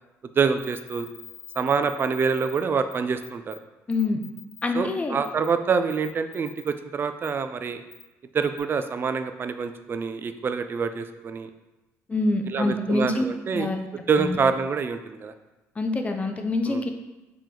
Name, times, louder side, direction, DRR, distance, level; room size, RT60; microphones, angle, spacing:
voice 1, 0.4-1.1 1.6-3.6 4.7-7.8 8.3-11.5 12.5-13.7 14.1-15.3 16.6-16.8, right 5 dB, 35° right, 9 dB, 0.3 m, -26 dB
sound 1, 0.6-2.6 2.9-3.0 3.2-3.6 3.9-4.6 5.2-5.5 5.9-6.7 7.2-7.3 7.9-8.0 8.4-8.6, left 8 dB, 45° left, 1.3 m, -45 dB
voice 2, 3.9-4.2 4.6-5.2 12.1-13.2 13.5-13.8 14.2-14.4 15.8-16.9, left 2 dB, 20° left, 5 dB, 0.5 m, -25 dB
4.9 x 3.0 x 3.7 m, 1.0 s
cardioid pair, 95°, 6 cm